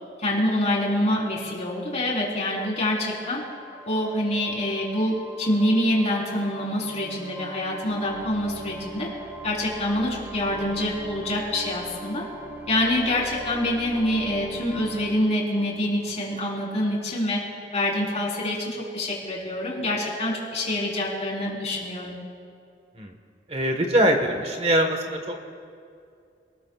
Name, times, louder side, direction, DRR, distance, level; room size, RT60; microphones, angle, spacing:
voice 1, 0.2-3.4 3.8-9.1 9.4-12.2 12.7-17.5 17.7-22.2, left 1 dB, 35° left, -3 dB, 4.2 m, -26 dB
sound 1, 2.4-16.8, right 1 dB, 15° right, 1.9 m, -41 dB
voice 2, 23.5-25.4, right 1 dB, 35° right, 4 dB, 1.5 m, -23 dB
27.5 x 20.0 x 2.5 m, 2.4 s
head